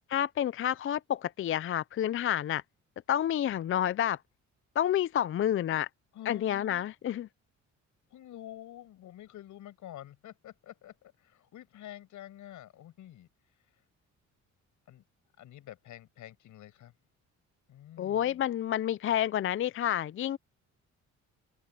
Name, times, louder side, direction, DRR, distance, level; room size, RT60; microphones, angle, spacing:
voice 1, 0.1-2.6 3.1-4.2 4.8-5.9 6.3-7.3 18.0-20.4, left 10 dB, 45° left, 0.5 m, -29 dB
voice 2, 6.1-6.9 8.1-13.3 14.9-15.0 15.4-16.9 17.7-18.4, left 12 dB, 80° left, 5.9 m, -48 dB
open air
cardioid pair, 90°, 30 cm